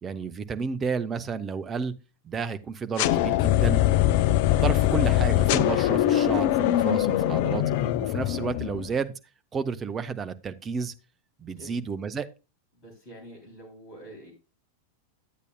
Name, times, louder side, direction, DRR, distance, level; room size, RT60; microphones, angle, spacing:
voice 1, 0.0-1.9 2.2-3.8 4.5-7.6 8.0-9.1 9.5-10.9 11.4-12.3, right 5 dB, 20° right, 9 dB, 0.6 m, -31 dB
sound 1, 3.0-8.9, left 13 dB, 50° left, 0.4 m, -22 dB
voice 2, 11.4-11.8 12.8-14.3, right 1 dB, 30° left, 1 dB, 2.9 m, -46 dB
10.0 x 8.2 x 2.2 m, 0.29 s
figure-of-eight pair, 90°, 0 cm